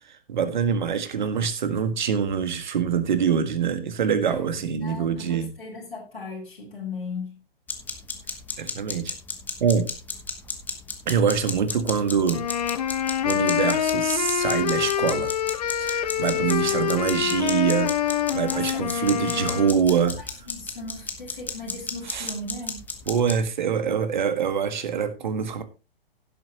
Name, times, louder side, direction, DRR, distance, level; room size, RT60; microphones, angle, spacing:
voice 1, 0.1-5.5 8.6-9.1 9.6-9.9 11.0-12.4 13.2-15.3 15.8-20.1 22.1-22.3 23.1-25.6, right 7 dB, 50° right, 1.7 m, -24 dB
voice 2, 4.3-7.4 16.3-17.4 18.4-19.2 19.4-22.8, left 3 dB, 75° left, 4.8 m, -38 dB
sound 1, 7.7-23.5, left 4 dB, 5° left, 1.1 m, -34 dB
sound 2, 12.3-19.8, left 10 dB, 40° left, 0.7 m, -26 dB
16.0 x 7.6 x 2.9 m
figure-of-eight pair, 120°, 30 cm